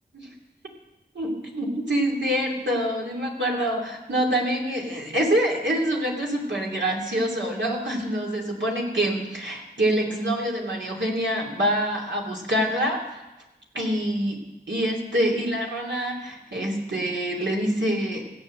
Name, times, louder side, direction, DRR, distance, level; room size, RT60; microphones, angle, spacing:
voice 1, 1.1-13.2 13.7-14.4 14.7-18.2, right 1 dB, 85° right, -2 dB, 2.8 m, -26 dB
16.0 x 8.5 x 7.6 m, 1.0 s
wide cardioid pair, 45°, 18 cm